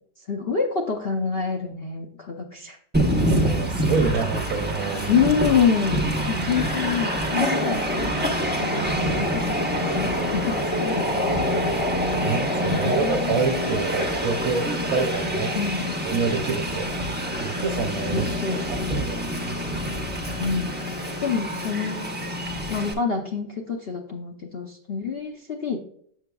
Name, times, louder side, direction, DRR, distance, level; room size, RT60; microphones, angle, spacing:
voice 1, 0.3-2.8 5.1-11.0 12.7-13.9 15.5-16.0 18.1-19.0 20.4-22.1 22.7-25.8, left 6 dB, 60° left, 1 dB, 0.6 m, -27 dB
Train, 2.9-22.9, equal, 10° right, 0.5 m, -26 dB
voice 2, 3.4-5.3 12.2-15.6 16.1-16.9 17.4-19.8, right 5 dB, 65° right, 7 dB, 1.0 m, -28 dB
7.8 x 6.5 x 2.3 m, 0.66 s
omnidirectional pair, 1.8 m